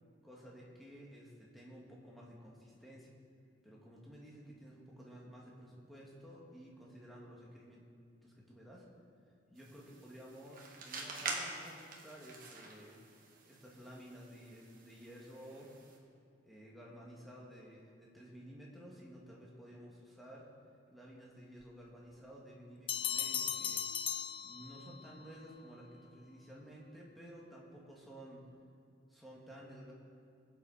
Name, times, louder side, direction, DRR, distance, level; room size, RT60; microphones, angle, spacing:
voice 1, 0.2-3.1 3.6-7.8 8.2-8.9 9.5-13.0 13.5-15.8 16.4-20.5 20.9-24.1 24.4-28.5 29.1-29.9, equal, ahead, -4 dB, 2.1 m, -53 dB
sound 1, 9.6-16.0, right 3 dB, 50° right, 1.6 m, -46 dB
sound 2, 22.9-25.1, left 9 dB, 30° left, 0.4 m, -37 dB
21.5 x 7.9 x 4.3 m, 2.4 s
head